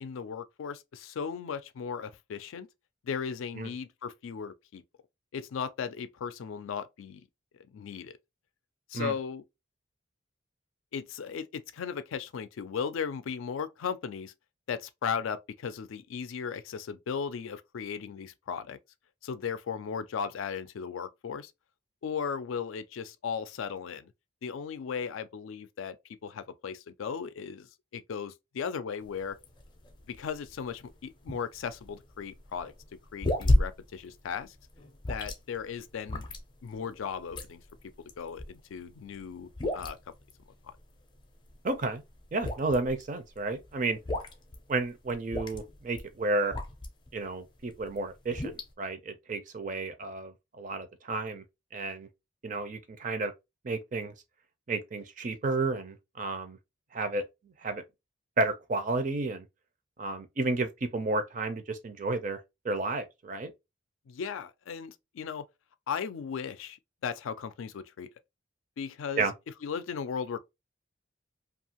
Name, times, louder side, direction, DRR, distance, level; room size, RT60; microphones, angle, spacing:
voice 1, 0.0-2.7 3.0-4.8 5.3-7.3 7.7-8.2 8.9-9.4 10.9-14.3 14.7-18.8 19.2-21.5 22.0-24.1 24.4-26.0 26.2-29.4 30.1-32.7 33.1-34.6 35.1-36.3 36.6-37.6 38.2-40.0 64.1-65.5 65.9-68.1 68.8-69.3 69.6-70.4, left 6 dB, 90° left, 0.4 m, -36 dB
sound 1, 29.0-47.1 47.6-48.7, left 1 dB, 25° left, 0.5 m, -33 dB
voice 2, 41.6-42.0 42.3-44.0 44.7-46.5 47.1-51.4 51.7-52.1 52.4-53.3 53.6-54.1 54.7-56.6 56.9-57.2 57.6-57.8 58.4-59.5 60.0-63.5 69.2-69.3, right 3 dB, 40° right, 0.4 m, -32 dB
2.7 x 2.4 x 2.8 m
head